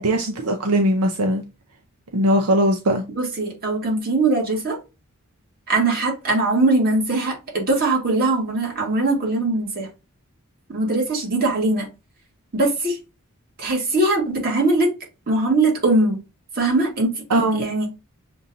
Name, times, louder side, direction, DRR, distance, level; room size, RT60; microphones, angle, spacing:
voice 1, 0.0-1.4 2.1-3.0 17.3-17.6, right 1 dB, 75° right, 0.7 m, -19 dB
voice 2, 3.2-4.8 5.7-9.9 10.7-11.9 12.5-13.0 13.6-14.9 15.3-16.2 16.6-17.1 17.6-17.9, right 2 dB, 45° right, 2.0 m, -21 dB
6.8 x 2.7 x 2.7 m
head